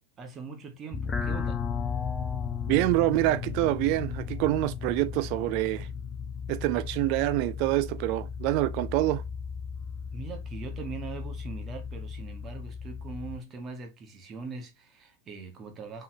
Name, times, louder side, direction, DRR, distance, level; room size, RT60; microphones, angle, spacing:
voice 1, 0.2-1.6 10.1-16.0, right 4 dB, 25° right, 2.3 m, -41 dB
sound 1, 0.9-13.4, left 6 dB, 20° left, 0.8 m, -35 dB
voice 2, 2.7-5.9 6.5-9.2, right 17 dB, 45° right, 0.4 m, -26 dB
6.0 x 5.5 x 3.0 m
figure-of-eight pair, 90°, 0 cm